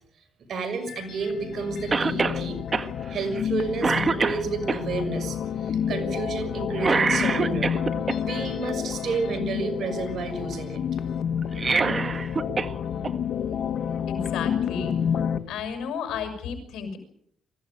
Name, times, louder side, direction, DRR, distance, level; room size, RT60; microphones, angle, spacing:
voice 1, 0.5-2.6 3.1-7.8 8.2-10.8 11.7-12.0, right 4 dB, 60° right, 7 dB, 6.1 m, -31 dB
sound 1, 0.7-15.4, left 8 dB, 65° left, 1.5 m, -29 dB
Cough, 1.9-2.4 2.7-2.9 3.4-3.5 3.8-4.8 6.8-8.2 11.4-12.7 13.0-13.1 14.3-14.4, right 4 dB, 35° right, 1.7 m, -24 dB
voice 2, 14.1-14.9 15.5-17.0, left 6 dB, 80° left, 5 dB, 6.6 m, -32 dB
24.0 x 16.0 x 9.3 m, 0.69 s
cardioid pair, 90°, 0 cm